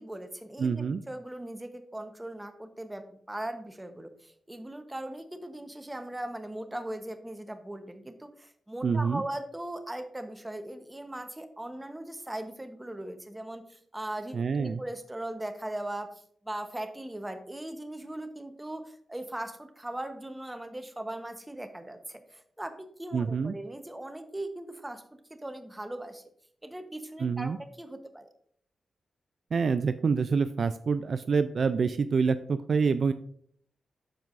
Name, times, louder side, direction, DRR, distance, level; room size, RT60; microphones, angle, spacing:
voice 1, 0.0-25.0 25.3-26.2 26.6-28.3, right 1 dB, 15° right, 8 dB, 1.0 m, -39 dB
voice 2, 0.6-1.0 8.8-9.2 14.3-14.8 23.1-23.5 27.2-27.6 29.5-33.1, right 5 dB, 60° right, 11 dB, 0.3 m, -26 dB
12.5 x 4.6 x 2.5 m, 0.63 s
cardioid pair, 75°, 0 cm